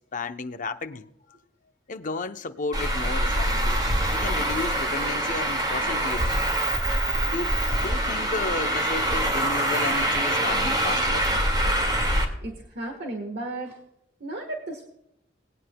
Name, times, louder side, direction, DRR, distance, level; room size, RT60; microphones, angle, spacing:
voice 1, 0.1-1.1 1.9-6.3 7.3-11.2, left 3 dB, 45° left, 0.7 m, -33 dB
Traffic noise roadway noise, 2.7-12.2, right 1 dB, 25° right, 2.0 m, -24 dB
voice 2, 12.4-13.8 14.2-15.0, right 2 dB, 60° right, 1.4 m, -34 dB
20.0 x 9.4 x 2.2 m
head